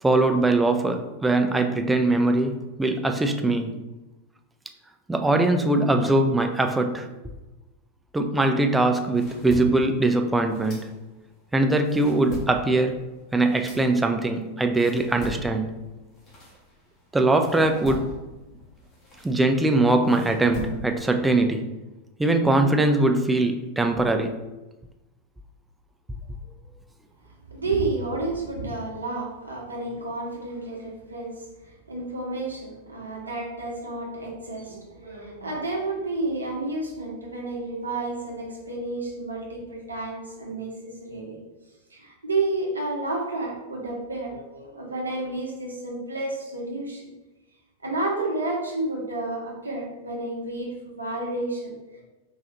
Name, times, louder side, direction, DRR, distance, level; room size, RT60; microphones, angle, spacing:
voice 1, 0.0-3.7 5.1-7.1 8.1-11.0 11.5-13.0 13.3-15.7 17.1-18.1 19.2-21.6 22.2-24.4, right 2 dB, 10° right, 5 dB, 0.3 m, -22 dB
sound 1, 8.8-11.3 11.7-17.0 17.4-21.1, left 2 dB, 30° left, 1.1 m, -39 dB
voice 2, 27.5-41.4 41.9-47.1 47.8-52.0, right 2 dB, 80° right, -2 dB, 0.8 m, -31 dB
3.8 x 2.4 x 2.8 m, 1.1 s
figure-of-eight pair, 90°, 0 cm